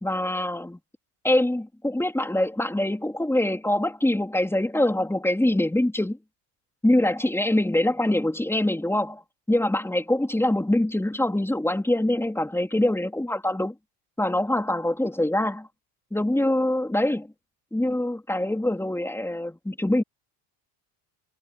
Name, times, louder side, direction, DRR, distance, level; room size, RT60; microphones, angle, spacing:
voice 1, 0.0-0.8 1.2-6.2 6.8-9.2 9.5-13.7 14.2-15.7 16.1-17.3 17.7-20.0, left 1 dB, 5° left, 3.9 m, -24 dB
cardioid pair, 135°, 49 cm